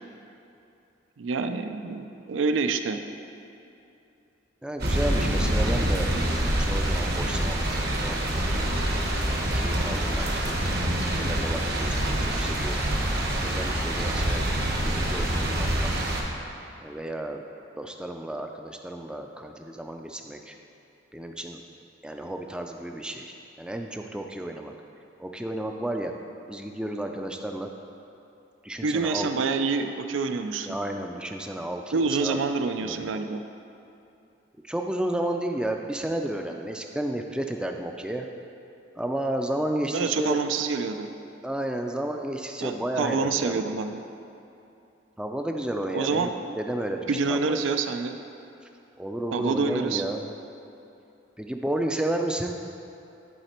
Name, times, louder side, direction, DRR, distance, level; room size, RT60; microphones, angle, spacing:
voice 1, 1.2-3.0 28.8-30.8 31.9-33.4 39.9-41.1 42.6-44.0 45.9-46.3 47.1-48.1 49.3-50.0, right 4 dB, 80° right, 8 dB, 0.4 m, -27 dB
voice 2, 4.6-6.1 6.6-8.7 9.4-10.5 10.8-12.8 13.4-14.5 14.8-16.1 16.8-17.4 17.8-20.5 21.1-21.6 22.0-24.7 25.2-26.1 26.5-27.7 28.6-29.3 30.6-32.4 32.8-33.1 34.6-38.3 39.0-40.4 41.4-43.7 45.2-47.6 49.0-50.3 51.4-52.5, right 1 dB, 5° right, 3 dB, 0.3 m, -32 dB
sound 1, 4.8-16.2, right 1 dB, 55° right, 0.9 m, -26 dB
11.0 x 4.2 x 4.3 m, 2.7 s
head